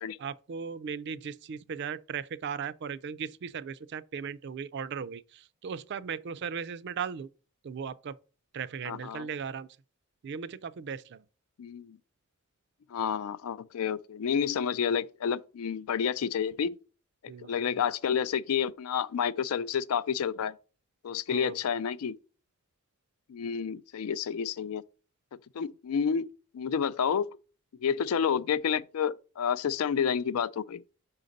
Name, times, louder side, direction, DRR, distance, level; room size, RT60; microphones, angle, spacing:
voice 1, 0.2-5.2 5.6-7.3 7.6-8.1 8.5-9.7 10.2-11.0 17.3-17.5 21.3-21.6, right 6 dB, 55° right, 0.4 m, -37 dB
voice 2, 8.8-9.3 11.6-12.0 12.9-16.7 17.5-20.5 21.0-22.1 23.3-24.8 25.5-26.2 26.5-27.3 27.8-30.8, left 7 dB, 90° left, 0.4 m, -29 dB
5.7 x 3.9 x 5.2 m
head